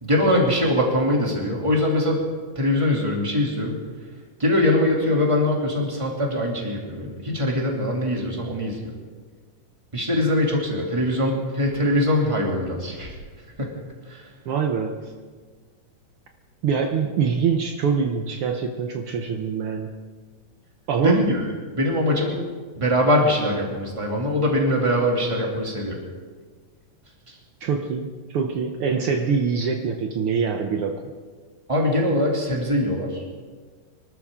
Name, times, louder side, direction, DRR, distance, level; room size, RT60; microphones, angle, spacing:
voice 1, 0.0-2.3 2.6-3.8 4.4-8.9 9.9-13.1 13.6-13.7 14.1-14.2 21.0-21.4 21.8-22.4 22.8-26.0 31.7-33.2, left 1 dB, 10° right, -1 dB, 2.3 m, -22 dB
voice 2, 14.4-15.1 16.6-20.0 20.9-21.3 27.6-31.1, right 6 dB, 80° right, 4 dB, 1.2 m, -24 dB
25.0 x 13.5 x 3.7 m, 1.5 s
omnidirectional pair, 3.7 m